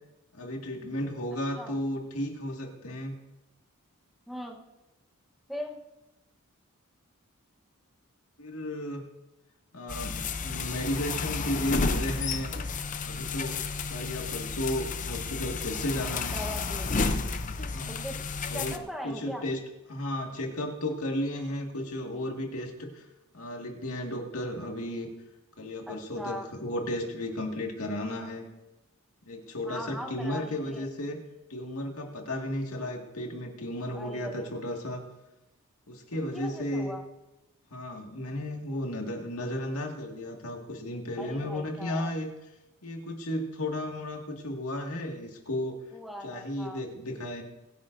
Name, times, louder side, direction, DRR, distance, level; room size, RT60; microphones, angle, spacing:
voice 1, 0.3-3.2 8.4-9.1 9.7-12.5 13.0-13.5 13.9-16.4 17.7-18.0 18.5-19.6 19.9-23.1 23.3-25.1 25.6-28.5 29.3-31.2 31.5-35.0 35.9-37.0 37.7-42.3 42.8-45.8 46.2-47.4, left 1 dB, 80° left, 2 dB, 2.0 m, -34 dB
voice 2, 4.3-4.6 5.5-5.8 16.3-16.9 18.0-18.2 18.5-19.4 26.2-26.5 29.7-30.8 33.9-34.5 36.3-37.0 41.2-42.1 45.9-46.8, equal, ahead, 0 dB, 1.1 m, -39 dB
sound 1, 9.9-18.8, left 4 dB, 35° left, 0.6 m, -32 dB
23.5 x 10.5 x 2.7 m, 0.96 s
head